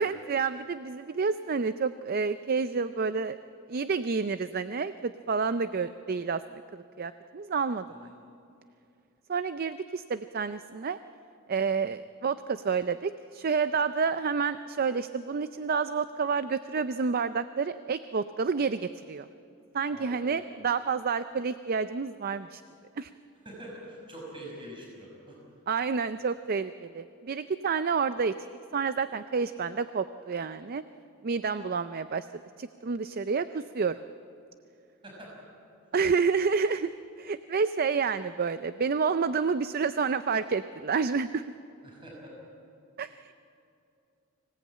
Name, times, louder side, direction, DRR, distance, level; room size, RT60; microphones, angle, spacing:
voice 1, 0.0-3.4 3.7-6.4 6.7-7.9 9.3-11.0 11.5-19.3 19.7-22.6 23.0-23.1 25.7-28.3 28.7-30.8 31.2-32.3 32.6-34.0 35.9-36.9 37.2-41.4 43.0-43.1, right 5 dB, 45° right, 12 dB, 0.5 m, -29 dB
voice 2, 19.9-20.5 23.4-25.4 35.0-35.3 41.8-42.3, right 1 dB, 25° right, -3 dB, 5.7 m, -45 dB
25.0 x 17.5 x 8.6 m, 2.7 s
head